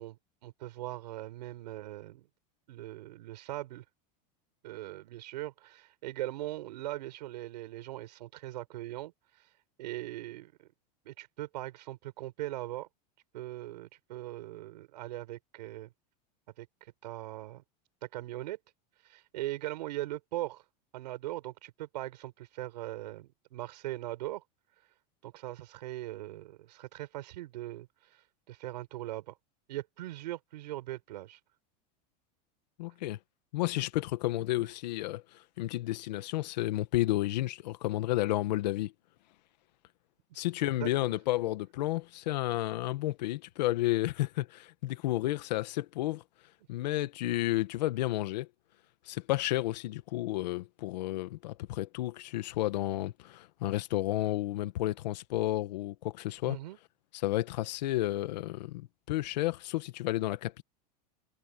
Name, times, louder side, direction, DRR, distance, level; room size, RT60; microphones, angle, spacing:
voice 1, 0.0-2.3 2.7-3.8 4.6-9.1 9.8-10.5 11.0-12.9 13.3-15.9 16.6-16.7 17.0-17.6 18.0-18.6 19.0-20.6 20.9-24.4 25.2-27.9 28.5-29.3 29.7-31.4 40.7-40.9 56.5-56.8, right 16 dB, 90° right, 6.5 m, -40 dB
voice 2, 32.8-33.2 33.5-35.2 35.6-38.9 40.3-46.2 46.7-48.5 49.1-56.6 57.1-60.6, left 16 dB, 85° left, 1.6 m, -31 dB
supercardioid pair, 150°, 21 cm